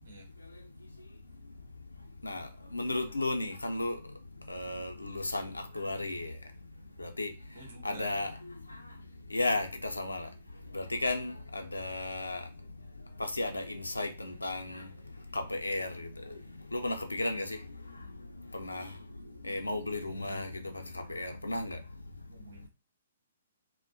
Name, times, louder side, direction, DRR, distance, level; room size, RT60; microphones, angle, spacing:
voice 1, 2.2-4.0 4.5-6.4 7.0-7.3 7.8-8.8 9.3-10.3 10.7-12.5 13.2-14.9 15.3-16.4 16.7-17.6 18.4-19.0 19.4-21.8, left 2 dB, 85° left, 0.4 m, -34 dB
voice 2, 7.5-8.1 20.0-20.4 22.3-22.7, right 3 dB, 65° right, 0.9 m, -50 dB
2.3 x 2.1 x 2.5 m
figure-of-eight pair, 120°, 0 cm